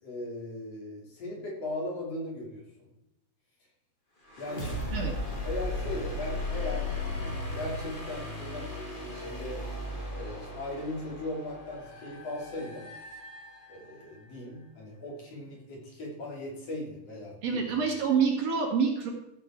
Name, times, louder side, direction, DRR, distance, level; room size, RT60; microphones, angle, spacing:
voice 1, 0.0-2.6 4.4-4.7 5.4-6.8 7.1-8.7 9.0-9.6 10.1-12.9 13.7-17.6, left 1 dB, 55° left, -3 dB, 4.2 m, -38 dB
sound 1, 4.3-14.0, left 1 dB, 20° left, 2.0 m, -36 dB
voice 2, 17.4-19.1, right 6 dB, 60° right, 0 dB, 2.8 m, -27 dB
14.5 x 7.6 x 4.5 m, 0.88 s
omnidirectional pair, 3.4 m